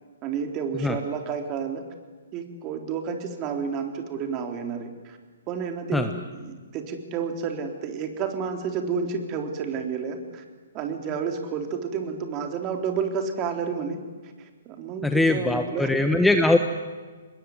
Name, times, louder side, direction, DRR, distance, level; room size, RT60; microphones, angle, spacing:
voice 1, 0.2-1.8 2.3-5.2 5.5-10.4 10.7-15.9, right 6 dB, 30° right, 5 dB, 3.8 m, -30 dB
voice 2, 15.0-16.6, left 2 dB, 5° left, 6 dB, 1.3 m, -21 dB
25.0 x 21.0 x 9.6 m, 1.4 s
figure-of-eight pair, 130°, 0 cm